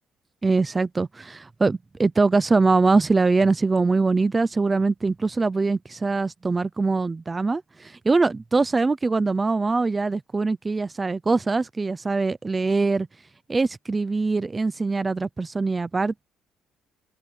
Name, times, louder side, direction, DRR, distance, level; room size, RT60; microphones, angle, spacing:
voice 1, 0.4-13.1 13.5-16.2, right 3 dB, 15° right, 0.5 m, -23 dB
open air
cardioid pair, 160°, 0 cm